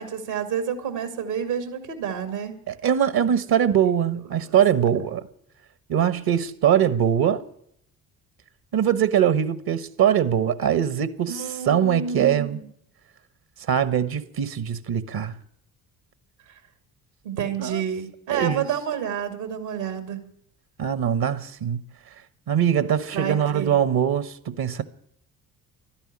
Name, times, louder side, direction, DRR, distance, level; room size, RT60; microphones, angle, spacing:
voice 1, 0.0-2.5 11.3-12.6 17.2-20.3 23.1-23.8, right 7 dB, 75° right, 2.5 m, -29 dB
voice 2, 2.7-5.3 5.9-7.4 8.7-12.6 13.7-15.3 17.6-17.8 18.3-18.6 20.8-21.8 22.5-24.8, right 9 dB, 55° right, 1.3 m, -22 dB
12.5 x 10.5 x 9.9 m
hypercardioid pair, 50°, 44 cm